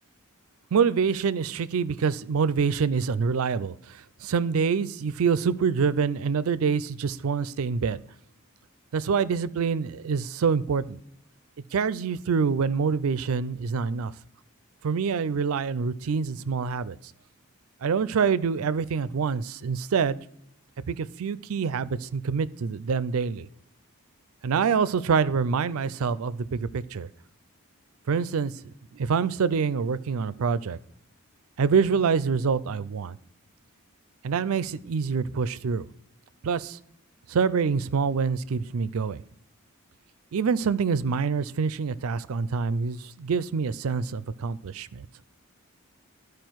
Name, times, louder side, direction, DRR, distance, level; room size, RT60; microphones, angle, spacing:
voice 1, 0.7-8.0 8.9-11.0 11.7-14.1 14.8-17.0 17.8-20.2 20.9-23.5 24.4-27.1 28.1-28.5 28.9-30.8 31.6-33.2 34.2-35.9 36.4-36.8 37.3-39.2 40.3-45.1, right 5 dB, 75° right, 0.4 m, -26 dB
12.5 x 4.8 x 4.6 m
head